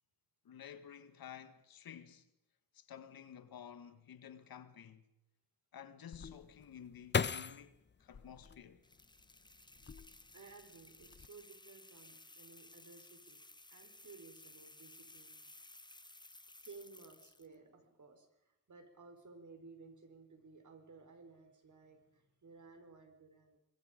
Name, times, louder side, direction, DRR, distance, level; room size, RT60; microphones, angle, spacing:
voice 1, 0.4-2.3 2.7-5.0 5.7-8.8, left 8 dB, 90° left, 1.6 m, -52 dB
sound 1, 6.1-9.2 9.7-10.5 10.8-11.3, left 5 dB, 30° left, 0.7 m, -38 dB
sound 2, 8.8-17.6, left 2 dB, 10° left, 1.0 m, -58 dB
voice 2, 10.3-13.4 13.7-15.4 16.5-23.6, right 4 dB, 55° right, 4.8 m, -57 dB
25.5 x 22.0 x 5.2 m
cardioid pair, 75°, 35 cm